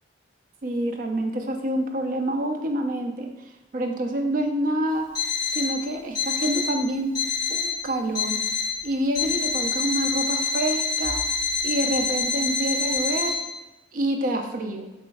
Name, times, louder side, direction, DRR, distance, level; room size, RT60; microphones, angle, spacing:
voice 1, 0.6-3.3 3.7-5.1 5.5-7.1 7.5-8.4 8.8-11.2 11.6-13.3 13.9-14.9, right 1 dB, 45° right, 4 dB, 0.4 m, -27 dB
Alarm, 5.1-5.7 6.1-6.7 7.1-7.7 8.1-8.7 9.1-13.3, left 5 dB, 20° left, 1.3 m, -26 dB
3.1 x 3.0 x 3.4 m, 1.0 s
head